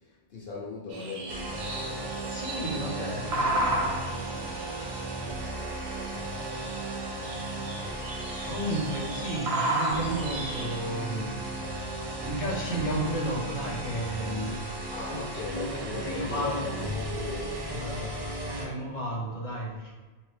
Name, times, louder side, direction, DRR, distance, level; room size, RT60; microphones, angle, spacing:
voice 1, 0.0-2.4 14.9-18.6, left 4 dB, 70° left, -3 dB, 0.9 m, -39 dB
sound 1, 0.9-11.0, right 1 dB, 85° right, 1.0 m, -34 dB
sound 2, 1.3-18.7, right 1 dB, 30° right, 0.5 m, -35 dB
voice 2, 2.3-4.2 8.5-11.3 12.2-14.5 15.1-15.2 15.4-16.6 18.5-19.9, right 1 dB, 35° left, -4 dB, 1.0 m, -33 dB
4.6 x 2.8 x 3.3 m, 1.3 s
omnidirectional pair, 1.0 m